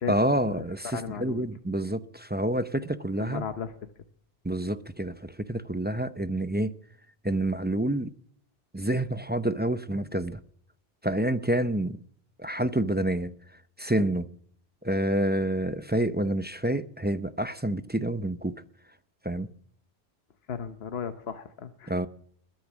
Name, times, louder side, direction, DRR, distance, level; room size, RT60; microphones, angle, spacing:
voice 1, 0.1-3.4 4.4-6.7 7.2-8.1 8.7-10.4 11.0-12.0 12.4-13.3 13.8-14.3 14.8-18.6 19.2-19.5 21.9-22.1, right 1 dB, 15° right, 0.5 m, -28 dB
voice 2, 0.9-1.5 3.2-3.7 20.5-22.1, left 7 dB, 80° left, 1.2 m, -35 dB
21.5 x 10.5 x 6.1 m
omnidirectional pair, 1.0 m